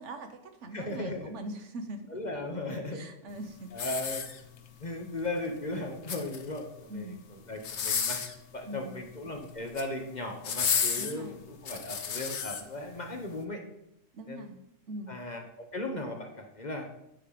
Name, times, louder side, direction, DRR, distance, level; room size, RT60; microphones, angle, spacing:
voice 1, 0.0-2.0 2.9-3.7 6.9-7.3 8.7-9.0 11.0-11.5 14.1-14.6 14.9-15.2, right 1 dB, 65° right, 7 dB, 1.2 m, -41 dB
voice 2, 0.7-1.3 2.1-3.1 3.7-4.3 4.8-7.2 7.5-8.2 8.5-13.6 14.3-14.4 15.1-16.9, left 2 dB, 35° left, 2 dB, 1.2 m, -37 dB
sound 1, 3.7-4.8 5.9-6.6 7.6-8.4 9.5-9.9 10.4-12.6 13.2-13.3, left 7 dB, 60° left, 1.1 m, -32 dB
9.4 x 5.3 x 5.0 m, 0.82 s
omnidirectional pair, 1.4 m